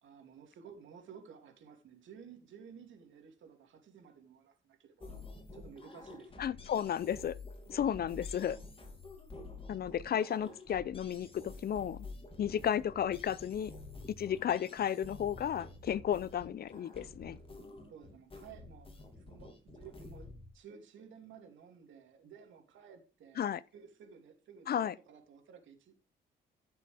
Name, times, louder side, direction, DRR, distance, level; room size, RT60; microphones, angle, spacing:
voice 1, 0.0-5.2 5.5-6.6 7.8-8.0 17.9-18.9 19.2-26.0, right 7 dB, 75° right, 2.9 m, -54 dB
sound 1, 5.0-20.5, left 2 dB, 30° left, 2.8 m, -49 dB
voice 2, 6.4-7.4 7.7-8.6 9.7-12.1 12.4-13.7 14.2-17.4 23.4-23.6 24.7-24.9, left 9 dB, 50° left, 0.6 m, -33 dB
14.5 x 6.8 x 3.5 m
cardioid pair, 90°, 20 cm